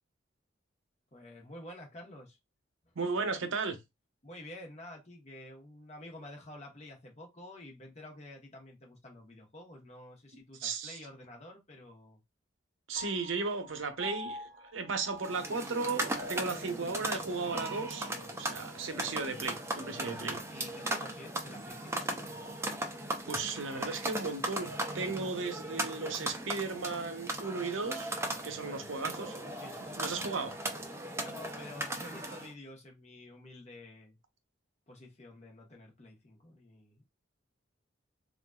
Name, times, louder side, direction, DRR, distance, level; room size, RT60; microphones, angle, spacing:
voice 1, 1.1-2.4 2.8-2.9 4.2-12.2 16.7-16.9 17.9-18.4 20.5-22.7 28.2-29.0 29.5-30.1 31.2-34.2 34.9-37.1, left 1 dB, 35° left, 1.0 m, -50 dB
voice 2, 3.0-3.8 10.6-11.0 12.9-20.4 23.3-28.1 28.4-29.6 30.0-30.5, right 4 dB, 85° right, 0.7 m, -35 dB
Piano, 13.0-19.6, left 1 dB, 50° right, 0.8 m, -48 dB
sound 1, 15.2-32.5, right 1 dB, 15° right, 0.4 m, -38 dB
3.7 x 2.4 x 2.2 m
head